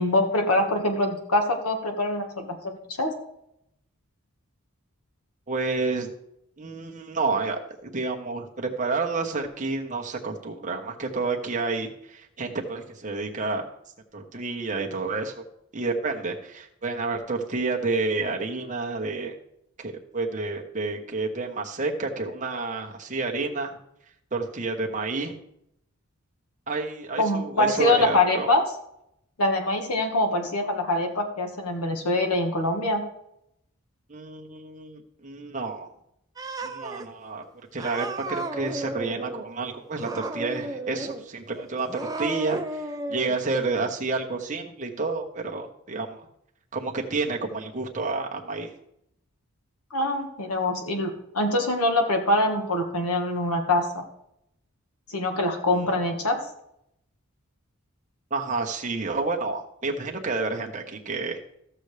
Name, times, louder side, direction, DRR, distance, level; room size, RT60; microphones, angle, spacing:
voice 1, 0.0-3.1 27.2-28.6 29.4-33.0 49.9-54.0 55.1-56.4, left 1 dB, 90° left, 4 dB, 1.6 m, -24 dB
voice 2, 5.5-6.1 6.6-13.6 14.1-15.3 15.7-19.3 19.8-23.8 24.3-25.3 26.7-28.5 34.1-35.9 36.6-37.4 37.7-46.3 46.7-48.7 55.8-56.1 58.3-61.4, right 3 dB, 35° right, 1 dB, 1.1 m, -30 dB
Cat, 36.4-37.0 37.8-39.5 40.0-41.2 41.8-43.4, right 2 dB, 15° right, 0.5 m, -33 dB
14.5 x 6.7 x 3.3 m, 0.77 s
head